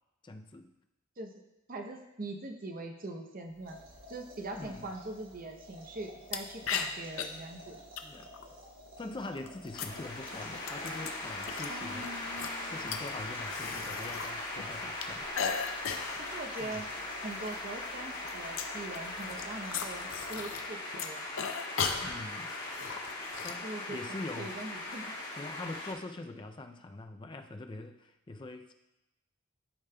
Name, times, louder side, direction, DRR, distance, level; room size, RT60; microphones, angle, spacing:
voice 1, 0.2-0.7 4.6-4.9 7.7-8.3 9.0-15.3 16.6-16.8 22.0-22.6 23.4-24.5 25.3-28.7, left 2 dB, 25° left, 6 dB, 0.4 m, -44 dB
voice 2, 1.7-3.8 4.1-7.8 11.7-12.8 16.2-16.9 17.2-21.2 23.6-25.2, right 2 dB, 40° right, 4 dB, 0.7 m, -42 dB
sound 1, 3.5-20.9, equal, 65° right, 2.6 m, -52 dB
sound 2, 6.3-6.4 6.7-7.2 8.0-8.5 9.3-11.7 12.0-14.3 14.6-16.3 16.7-16.8 17.1-17.6 17.9-20.7 20.9-23.5, left 6 dB, 70° left, 0.6 m, -37 dB
sound 3, 9.7-25.9, left 2 dB, 50° left, 1.8 m, -40 dB
11.5 x 5.1 x 2.2 m, 0.96 s
head